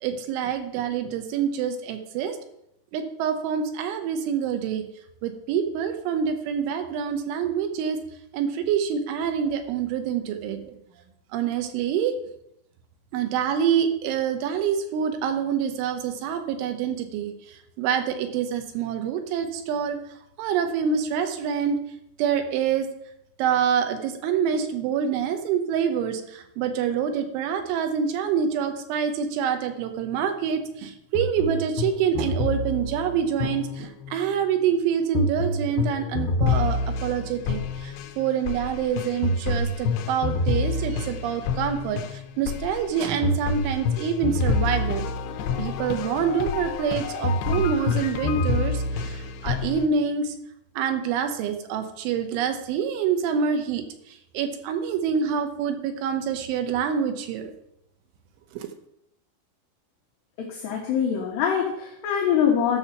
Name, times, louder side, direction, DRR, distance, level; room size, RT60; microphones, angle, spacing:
voice 1, 0.0-2.4 2.9-4.8 5.2-8.0 8.3-10.8 11.3-12.1 13.1-17.3 17.8-20.0 20.4-21.8 22.2-22.9 23.4-45.0 45.6-50.3 50.8-53.8 54.3-57.4 58.5-58.7, right 7 dB, 75° right, 6 dB, 3.2 m, -26 dB
sound 1, 31.2-34.3 35.1-49.9, left 3 dB, 85° left, 2.4 m, -27 dB
voice 2, 60.4-62.8, left 8 dB, 70° left, -1 dB, 3.0 m, -24 dB
13.0 x 6.5 x 5.8 m, 0.78 s
omnidirectional pair, 6.0 m